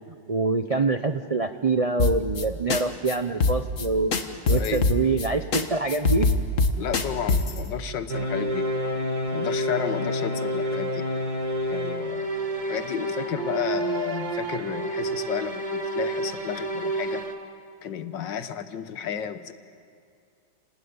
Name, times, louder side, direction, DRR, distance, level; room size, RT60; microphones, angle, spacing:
voice 1, 0.3-4.1 4.5-6.3, right 3 dB, 60° right, 7 dB, 0.3 m, -25 dB
sound 1, 2.0-2.4 2.7-2.8 3.1-3.2 3.4-3.9 4.1-5.3 5.5-5.6 5.9-7.6, left 4 dB, 45° left, 1.7 m, -22 dB
voice 2, 4.5-4.8 6.8-8.7 9.3-11.1 11.7-12.3 12.6-17.2 17.8-19.5, left 9 dB, 85° left, 11 dB, 1.8 m, -32 dB
sound 2, 8.1-17.4, right 1 dB, 25° right, 1.8 m, -29 dB
29.5 x 19.0 x 9.6 m, 2.3 s
omnidirectional pair, 1.9 m